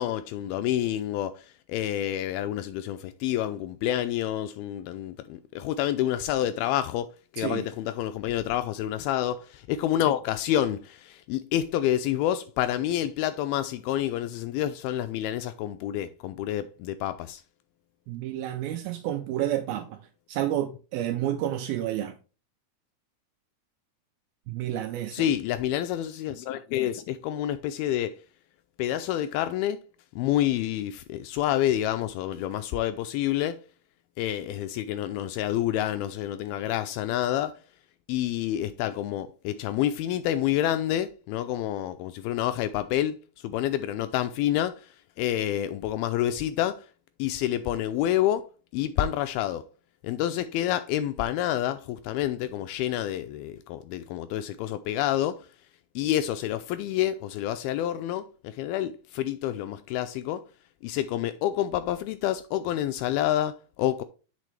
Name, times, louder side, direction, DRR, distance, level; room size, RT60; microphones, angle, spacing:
voice 1, 0.0-17.4 25.1-28.2 28.8-29.8 30.2-33.6 34.2-37.6 38.1-44.9 45.2-46.9 47.2-49.6 50.0-55.5 56.0-60.5 60.8-64.0, left 12 dB, 80° left, 2.2 m, -28 dB
voice 2, 18.1-20.0 20.3-22.2 24.5-25.3, right 12 dB, 80° right, 2.3 m, -30 dB
8.3 x 6.1 x 3.2 m
omnidirectional pair, 4.7 m